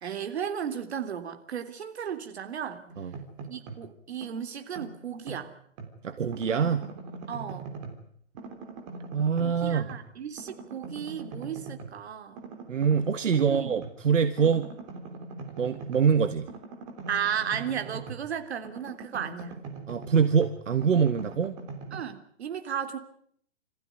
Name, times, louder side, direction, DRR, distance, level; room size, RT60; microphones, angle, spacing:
voice 1, 0.0-2.8 3.5-5.5 7.3-7.7 9.4-12.4 13.5-13.8 14.4-14.6 17.1-19.6 21.9-23.0, right 8 dB, 60° right, 7 dB, 3.3 m, -34 dB
sound 1, 2.9-3.9 4.2-6.0 6.3-8.1 8.4-10.1 10.4-12.0 12.4-14.0 14.4-18.3 18.6-22.0, right 4 dB, 25° right, 3.4 m, -42 dB
voice 2, 6.0-6.9 9.1-9.9 12.7-14.7 15.6-16.5 19.9-21.5, right 6 dB, 80° right, 9 dB, 1.7 m, -24 dB
27.0 x 15.0 x 9.4 m, 0.67 s
hypercardioid pair, 160°, 37 cm